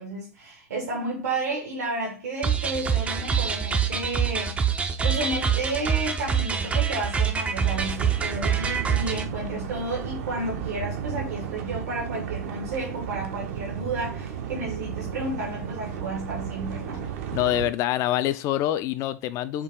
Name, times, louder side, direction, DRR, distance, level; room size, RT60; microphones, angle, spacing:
voice 1, 0.0-4.7 5.0-17.1, right 2 dB, 75° right, 1.3 m, -32 dB
sound 1, 2.4-9.3, right 7 dB, 15° right, 0.5 m, -25 dB
sound 2, 7.6-17.7, right 9 dB, 55° right, 0.8 m, -34 dB
voice 2, 17.3-19.6, left 13 dB, 40° left, 0.4 m, -25 dB
4.6 x 2.4 x 3.6 m
hypercardioid pair, 110°, 9 cm